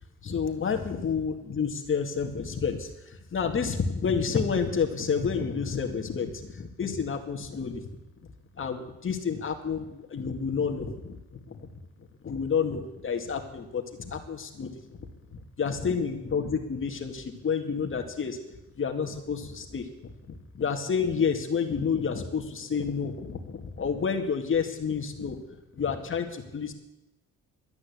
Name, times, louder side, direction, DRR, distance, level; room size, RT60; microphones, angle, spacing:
voice 1, 0.2-7.9 8.6-11.7 12.2-18.4 18.8-25.4 25.8-26.7, left 6 dB, 45° left, 4 dB, 2.1 m, -30 dB
12.5 x 9.6 x 8.4 m, 0.97 s
cardioid pair, 90°, 30 cm